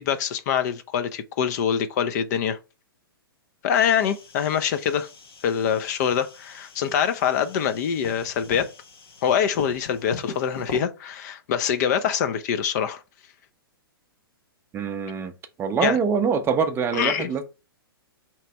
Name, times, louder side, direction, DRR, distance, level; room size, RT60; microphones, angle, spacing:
voice 1, 0.0-2.6 3.6-5.1 5.4-8.7 9.2-13.0 15.8-16.0 16.9-17.4, left 8 dB, 45° left, 0.4 m, -24 dB
sound 1, 3.7-10.8, left 3 dB, 75° left, 1.1 m, -42 dB
voice 2, 14.7-15.3 15.6-17.4, right 5 dB, 20° right, 0.5 m, -24 dB
3.3 x 2.9 x 4.2 m
figure-of-eight pair, 115°, 13 cm